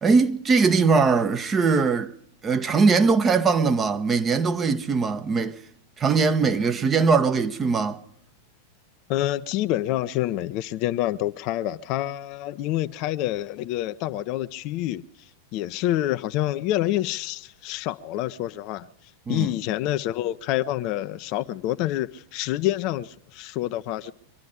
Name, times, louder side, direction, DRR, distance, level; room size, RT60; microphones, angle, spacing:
voice 1, 0.0-2.1 2.4-5.6 6.0-8.0 19.3-19.5, right 4 dB, 20° right, 1.0 m, -21 dB
voice 2, 9.1-15.0 15.5-18.8 19.3-24.1, left 14 dB, 40° left, 0.6 m, -27 dB
24.0 x 11.5 x 5.1 m
figure-of-eight pair, 90°, 0 cm